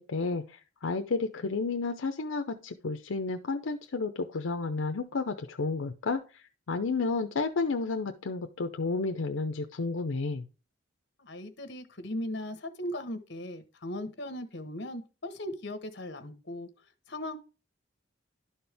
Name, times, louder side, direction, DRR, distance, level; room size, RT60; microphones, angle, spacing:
voice 1, 0.0-6.2 6.7-10.4, left 3 dB, 85° left, 6 dB, 0.6 m, -31 dB
voice 2, 11.2-16.7 17.1-17.4, left 1 dB, 60° left, 9 dB, 1.1 m, -38 dB
11.5 x 4.4 x 3.4 m, 0.32 s
head